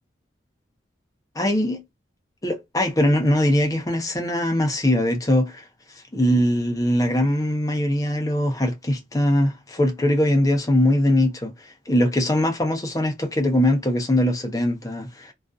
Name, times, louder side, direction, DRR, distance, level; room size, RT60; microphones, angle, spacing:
voice 1, 1.4-1.8 2.4-5.6 6.1-15.3, left 1 dB, 20° left, 0.5 m, -21 dB
2.5 x 2.3 x 2.3 m
head